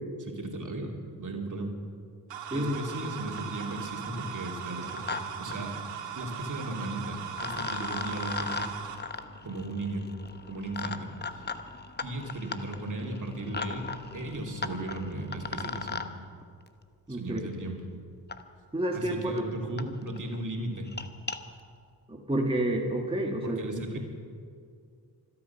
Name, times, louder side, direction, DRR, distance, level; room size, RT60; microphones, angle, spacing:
voice 1, 0.2-1.7 2.5-5.8 6.1-8.7 9.4-10.0 10.5-11.5 12.0-16.0 17.1-17.8 18.9-20.9 23.4-24.0, right 1 dB, 40° right, 1 dB, 3.0 m, -36 dB
sound 1, 2.3-9.0, right 8 dB, 70° right, 1.9 m, -39 dB
sound 2, 3.0-3.1 3.4-3.8 4.7-5.2 5.5-5.6 6.9-7.0 7.4-16.1 17.4-17.5 18.3-18.4 19.1-19.2 19.4-19.5 19.8-19.9 20.2-20.4 20.8-21.4, left 4 dB, 20° left, 1.1 m, -38 dB
voice 2, 17.1-17.5 18.7-19.5 22.1-23.6, right 1 dB, 10° right, 0 dB, 1.9 m, -29 dB
25.5 x 8.6 x 5.9 m, 2.2 s
supercardioid pair, 50°, 46 cm